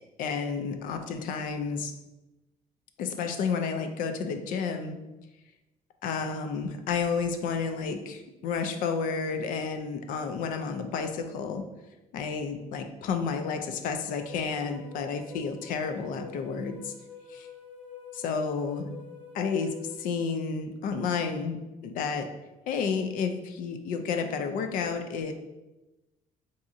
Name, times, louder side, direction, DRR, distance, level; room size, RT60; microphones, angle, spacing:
voice 1, 0.2-1.9 3.0-5.0 6.0-11.7 12.1-16.9 17.3-17.5 18.1-18.9 19.3-22.3 22.7-25.3, left 5 dB, 65° left, 7 dB, 0.4 m, -31 dB
sound 1, 14.0-20.0, left 6 dB, 35° left, 0.9 m, -47 dB
4.7 x 2.7 x 2.5 m, 1.1 s
cardioid pair, 145°, 15 cm